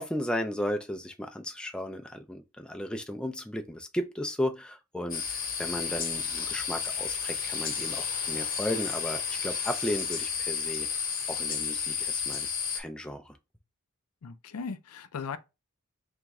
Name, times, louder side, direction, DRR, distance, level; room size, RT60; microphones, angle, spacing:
voice 1, 0.0-10.9 11.3-12.5 12.7-13.3, equal, 5° left, 0.3 m, -35 dB
sound 1, 5.1-12.8, left 6 dB, 40° left, 1.0 m, -32 dB
voice 2, 14.2-15.4, left 5 dB, 85° left, 0.4 m, -37 dB
3.5 x 3.0 x 3.5 m
head